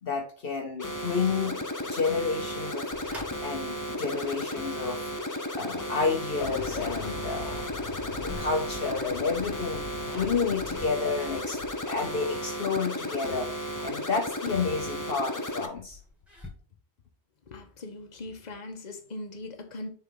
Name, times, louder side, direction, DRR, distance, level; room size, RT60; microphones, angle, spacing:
voice 1, 0.0-2.9 3.4-5.1 5.5-7.6 8.1-9.8 10.1-11.6 11.9-16.0, left 5 dB, 60° left, 3 dB, 1.1 m, -30 dB
sound 1, 0.8-15.7, equal, 20° left, 0.7 m, -34 dB
sound 2, 2.9-16.5, left 1 dB, ahead, 2.3 m, -49 dB
sound 3, 6.4-12.0, left 5 dB, 90° left, 1.1 m, -40 dB
voice 2, 17.5-19.9, left 2 dB, 40° left, 5 dB, 1.2 m, -40 dB
6.9 x 4.4 x 3.8 m, 0.41 s
omnidirectional pair, 1.1 m